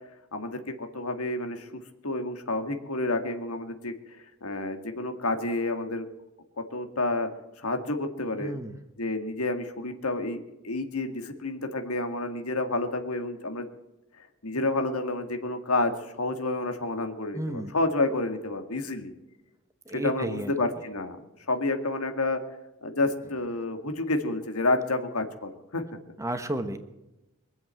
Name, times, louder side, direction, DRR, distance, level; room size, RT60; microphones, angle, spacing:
voice 1, 0.3-6.0 6.6-7.3 7.6-8.6 9.0-10.4 10.6-13.7 14.4-15.9 16.2-19.1 19.9-21.2 21.5-22.4 22.8-25.8, left 2 dB, 90° left, 6 dB, 2.0 m, -29 dB
voice 2, 8.4-8.7 17.3-17.7 19.9-20.5 26.2-26.8, right 1 dB, 15° right, 8 dB, 1.1 m, -32 dB
23.0 x 7.9 x 7.7 m, 0.97 s
head